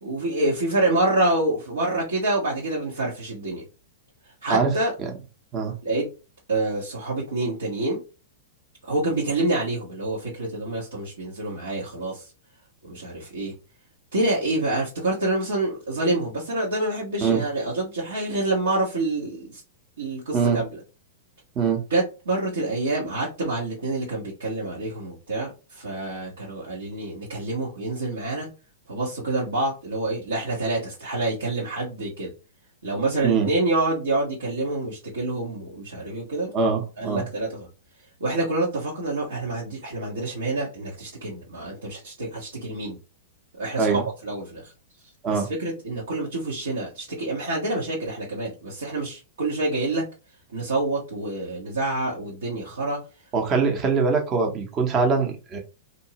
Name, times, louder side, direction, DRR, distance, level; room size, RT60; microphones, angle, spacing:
voice 1, 0.0-3.6 4.2-4.9 5.8-6.1 6.5-8.0 8.8-12.3 12.8-13.5 14.1-19.6 20.0-20.8 21.9-28.5 28.9-32.3 32.8-36.5 37.0-37.7 38.2-43.0 43.6-44.7 45.3-50.0 50.5-53.2, right 2 dB, 80° right, -6 dB, 1.3 m, -27 dB
voice 2, 36.5-37.2 43.8-44.0 45.2-45.5 53.3-55.6, right 5 dB, 30° right, 3 dB, 0.8 m, -22 dB
2.8 x 2.7 x 2.9 m, 0.31 s
hypercardioid pair, 110°, 0 cm